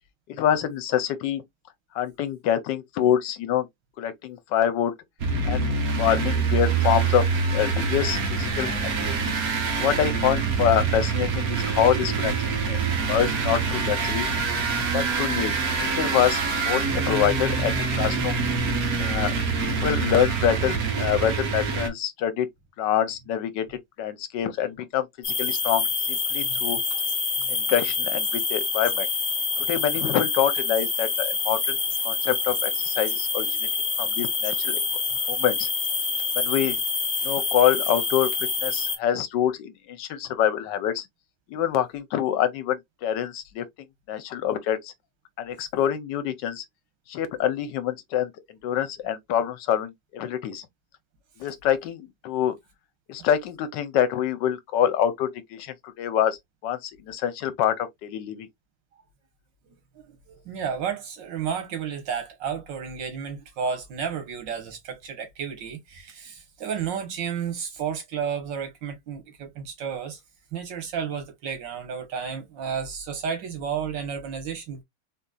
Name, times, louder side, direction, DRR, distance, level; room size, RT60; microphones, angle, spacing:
voice 1, 0.4-1.4 1.9-3.7 4.0-4.9 5.4-9.3 9.8-14.3 14.9-18.4 19.0-19.3 19.7-22.5 22.8-26.8 27.5-29.1 29.7-31.8 32.0-33.7 34.0-34.8 35.3-35.7 36.4-36.8 37.2-41.0 41.5-43.6 44.1-44.9 45.4-46.6 47.1-48.3 48.6-50.7 51.4-52.5 53.1-58.5, left 10 dB, 80° left, 1.3 m, -26 dB
sound 1, 5.2-21.9, right 5 dB, 60° right, 1.4 m, -25 dB
sound 2, 25.2-39.0, left 4 dB, 45° left, 1.1 m, -26 dB
voice 2, 60.1-70.2 70.5-74.8, right 7 dB, 85° right, 1.8 m, -32 dB
4.1 x 2.7 x 2.3 m
omnidirectional pair, 1.9 m